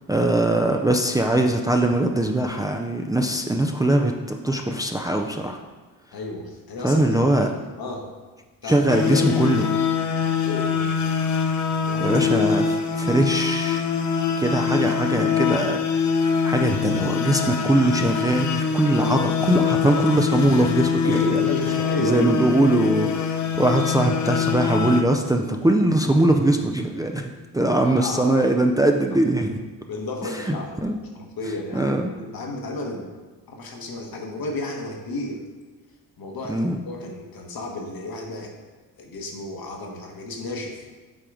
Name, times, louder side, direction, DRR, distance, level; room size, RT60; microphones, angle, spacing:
voice 1, 0.1-5.6 6.8-7.5 8.7-9.7 12.0-13.8 14.4-16.0 16.4-21.5 22.0-29.6 30.5-31.0 31.7-32.0 36.5-36.8, right 1 dB, 10° right, 3 dB, 0.4 m, -21 dB
voice 2, 6.1-8.1 8.6-9.3 10.4-10.9 11.8-12.2 20.8-22.3 27.6-28.4 29.9-30.7 31.1-33.1 33.5-35.4 36.2-38.5 39.0-40.8, left 2 dB, 65° left, 1 dB, 1.3 m, -32 dB
sound 1, 8.9-25.0, left 6 dB, 50° left, 0.7 m, -24 dB
7.7 x 3.7 x 4.9 m, 1.3 s
cardioid pair, 90°, 38 cm